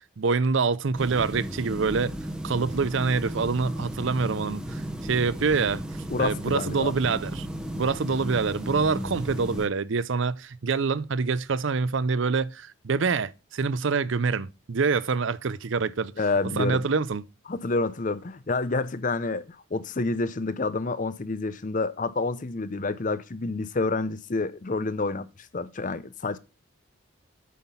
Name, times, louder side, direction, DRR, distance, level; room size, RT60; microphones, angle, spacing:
voice 1, 0.0-2.1 2.4-5.8 6.2-7.5 7.7-16.1 16.6-17.2, right 4 dB, 60° right, 0.5 m, -26 dB
sound 1, 1.0-9.7, equal, 5° right, 0.9 m, -35 dB
voice 2, 6.1-6.9 16.2-16.9 17.5-19.4 19.7-25.3 25.5-26.4, left 3 dB, 35° left, 0.6 m, -28 dB
8.4 x 5.9 x 5.5 m
head